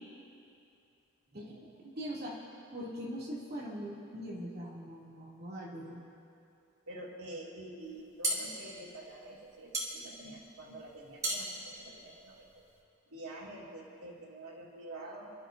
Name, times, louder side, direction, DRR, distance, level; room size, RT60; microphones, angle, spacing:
voice 1, 1.3-1.7 6.9-12.5 13.1-15.3, right 1 dB, 90° right, -4 dB, 2.5 m, -47 dB
voice 2, 2.0-2.3 2.7-6.0, equal, 45° right, -6 dB, 2.8 m, -41 dB
sound 1, 7.9-12.8, right 1 dB, 15° right, 1.9 m, -37 dB
29.5 x 12.5 x 2.7 m, 2.6 s
head